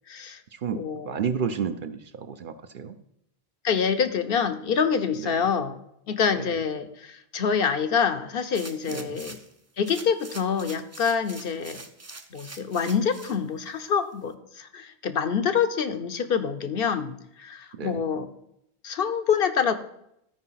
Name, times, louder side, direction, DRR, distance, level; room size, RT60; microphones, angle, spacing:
voice 1, 0.1-0.4 0.7-1.2 3.6-5.8 6.1-9.4 9.8-11.8 12.3-18.3 18.8-19.7, left 6 dB, 65° left, 9 dB, 0.9 m, -26 dB
voice 2, 0.6-2.9 5.2-5.3 6.3-6.5 8.9-9.2 17.7-18.1, right 6 dB, 60° right, 9 dB, 0.8 m, -31 dB
sound 1, 8.5-9.5 9.8-13.4 13.9-14.0, right 3 dB, 20° right, 0.4 m, -44 dB
13.0 x 4.9 x 5.7 m, 0.76 s
omnidirectional pair, 1.0 m